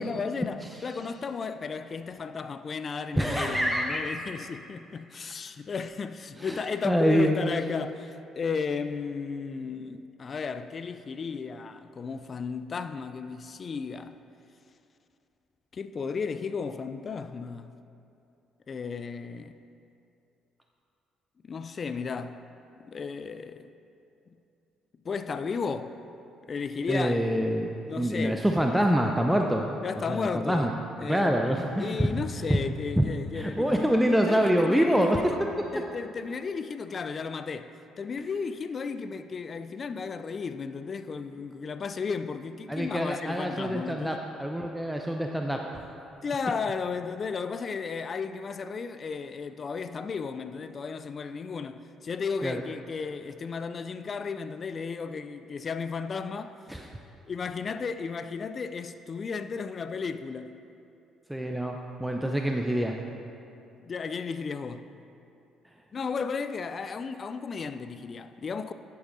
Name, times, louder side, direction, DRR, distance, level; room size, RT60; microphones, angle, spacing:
voice 1, 0.0-14.1 15.7-17.7 18.7-19.6 21.4-22.4 22.8-23.7 25.0-26.0 26.5-27.2 27.9-28.4 29.8-31.5 31.8-35.4 35.7-37.7 38.0-44.2 46.2-56.6 57.3-60.5 63.8-64.8 65.9-68.7, left 5 dB, 45° left, 0.3 m, -34 dB
voice 2, 3.1-4.2 6.4-6.6 6.8-7.3 26.9-29.8 30.1-30.7 31.0-32.0 32.4-32.6 33.0-33.1 33.3-35.2 42.7-45.6 52.4-52.6 56.7-56.9 61.3-63.0, equal, 5° right, 0.6 m, -26 dB
11.0 x 8.4 x 2.6 m
hypercardioid pair, 50°, 0 cm